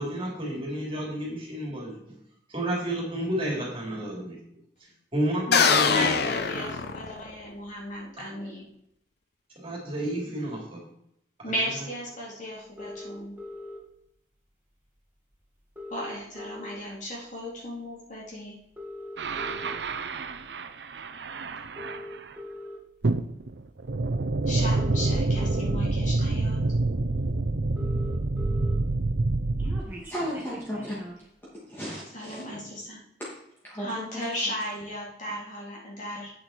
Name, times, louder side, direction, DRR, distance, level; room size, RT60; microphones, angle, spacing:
voice 1, 0.0-2.0 2.5-4.4 5.1-6.1 9.6-10.8, right 1 dB, 30° right, -2 dB, 3.4 m, -30 dB
sound 1, 5.5-7.5, left 5 dB, 65° left, 0.8 m, -23 dB
voice 2, 5.5-8.7 11.4-13.4 15.9-18.6 24.5-26.6 32.1-33.0 33.8-36.3, equal, 45° left, -3 dB, 3.5 m, -35 dB
sound 2, 12.8-13.8 15.0-15.1 15.3-15.4 15.6-17.1 17.5-17.8 18.6-19.8 20.5-20.7 21.6-22.8 24.0-24.1 24.6-25.8 26.5-26.6 26.8-26.9 27.2-27.3 27.5-28.8 29.1-31.3, left 1 dB, 10° right, 2.2 m, -41 dB
sound 3, 19.2-22.3 23.0-29.8, right 2 dB, 70° right, 0.7 m, -27 dB
voice 3, 30.0-31.0 31.5-32.4 33.6-34.2, equal, 15° left, -7 dB, 2.5 m, -35 dB
8.6 x 8.5 x 4.5 m, 0.76 s
head